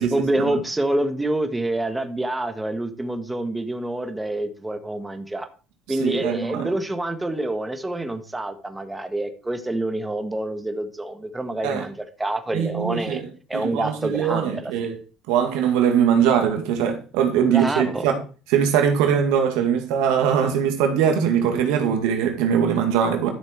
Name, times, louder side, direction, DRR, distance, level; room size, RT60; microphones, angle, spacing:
voice 1, 0.0-5.5 5.9-11.9 12.2-13.2 13.5-14.7 17.4-18.0, right 1 dB, 10° right, 1.4 m, -27 dB
voice 2, 6.0-6.7 11.6-11.8 12.5-13.3 13.5-15.0 15.3-18.2 18.5-23.3, right 8 dB, 85° right, 2.2 m, -21 dB
12.5 x 6.6 x 4.6 m
cardioid pair, 105°, 0 cm